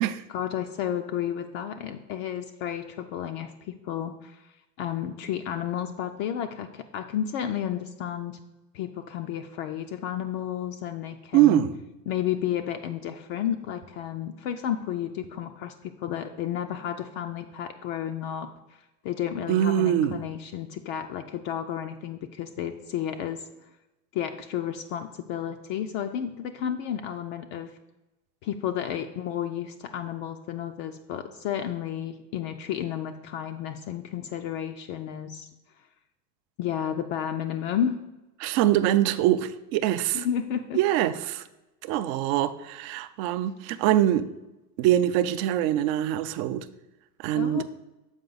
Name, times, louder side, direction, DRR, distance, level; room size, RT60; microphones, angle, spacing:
voice 1, 0.3-4.5 4.8-8.4 8.7-11.6 12.1-18.5 19.0-23.4 24.1-27.7 28.4-35.5 36.6-38.0 40.1-40.8 47.4-47.6, left 10 dB, 45° left, 6 dB, 0.5 m, -32 dB
voice 2, 11.3-11.7 19.5-20.3 38.4-40.3 40.7-41.4 41.8-44.3 44.8-46.7 47.2-47.6, right 12 dB, 40° right, 12 dB, 0.4 m, -23 dB
7.1 x 4.5 x 3.9 m, 1.0 s
hypercardioid pair, 105°, 49 cm